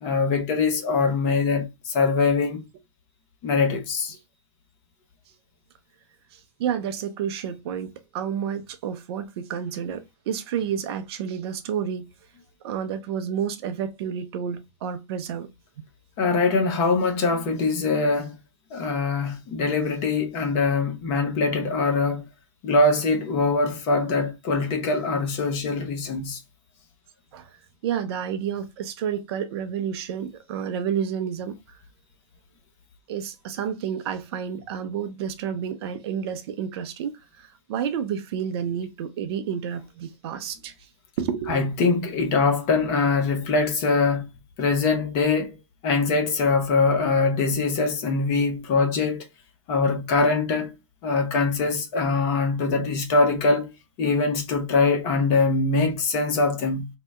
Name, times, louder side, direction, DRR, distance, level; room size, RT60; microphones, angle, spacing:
voice 1, 0.0-2.6 3.4-4.2 16.2-18.4 18.7-22.3 22.6-26.4 41.5-44.3 44.6-45.6 45.8-49.3 49.7-50.7 51.0-53.7 54.0-56.9, left 3 dB, 35° left, 0.9 m, -23 dB
voice 2, 6.3-12.1 12.6-15.5 27.3-27.5 27.8-31.8 33.1-40.7 41.2-41.7, right 8 dB, 50° right, 0.6 m, -30 dB
2.8 x 2.1 x 3.5 m
hypercardioid pair, 120°, 17 cm